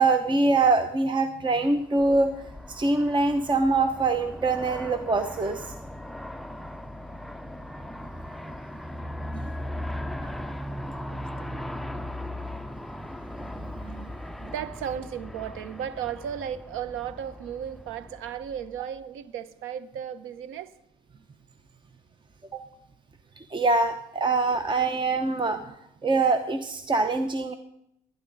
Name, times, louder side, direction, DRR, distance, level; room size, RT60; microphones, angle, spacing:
voice 1, 0.0-2.3 2.7-5.7 9.3-9.5 13.5-14.1 22.5-22.6 23.4-25.7 26.0-27.5, right 3 dB, 25° right, 0.9 m, -24 dB
Aircraft, 1.8-19.0, left 1 dB, ahead, 0.5 m, -38 dB
voice 2, 11.1-11.7 14.2-20.7, right 9 dB, 75° right, 0.9 m, -35 dB
23.0 x 10.5 x 4.0 m
supercardioid pair, 85°, 21 cm